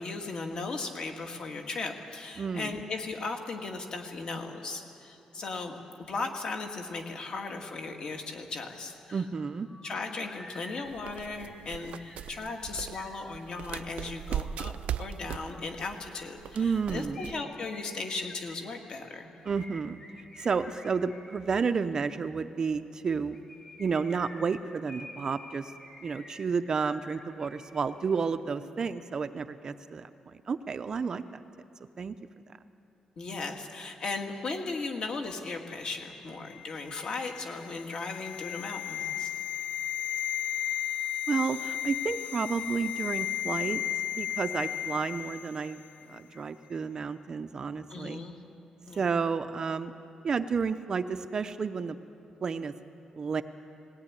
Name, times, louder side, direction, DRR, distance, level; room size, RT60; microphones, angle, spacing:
voice 1, 0.0-5.8 6.1-9.2 9.8-14.7 15.0-19.3 33.2-39.3 47.9-48.4 48.9-49.0, left 3 dB, 45° left, 3 dB, 2.1 m, -37 dB
voice 2, 2.4-2.7 9.1-9.7 16.5-17.2 19.4-20.0 20.4-23.4 23.8-25.7 26.0-31.4 32.0-32.1 41.3-43.8 44.2-45.8 46.1-48.2 49.0-49.9 50.2-52.0 52.4-52.7 53.1-53.4, right 5 dB, 35° right, 10 dB, 0.6 m, -31 dB
sound 1, 8.7-8.8 9.1-13.8 17.1-21.3 23.2-27.8 28.1-28.2, left 1 dB, 25° left, 3.1 m, -49 dB
sound 2, 10.8-17.4, right 10 dB, 75° right, 0.5 m, -39 dB
sound 3, 36.5-45.8 46.0-46.2, left 11 dB, 65° left, 0.4 m, -34 dB
19.5 x 17.5 x 9.7 m, 2.9 s
wide cardioid pair, 175°, 2 cm